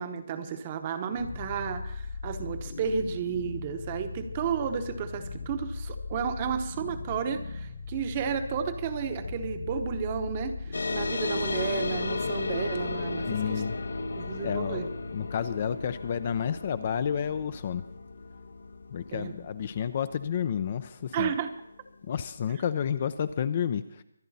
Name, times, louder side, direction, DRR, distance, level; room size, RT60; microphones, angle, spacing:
voice 1, 0.0-13.6 14.2-14.9 19.1-19.3 21.1-21.5, right 7 dB, 20° right, 9 dB, 0.9 m, -32 dB
sound 1, 1.1-20.2, left 4 dB, 50° left, 1.3 m, -40 dB
sound 2, 10.7-21.7, left 3 dB, 70° left, 1.0 m, -35 dB
voice 2, 13.3-13.8 14.4-17.8 18.9-21.3 22.1-24.0, left 8 dB, 25° left, 13 dB, 0.4 m, -30 dB
25.0 x 9.2 x 4.1 m, 0.80 s
hypercardioid pair, 175°, 0 cm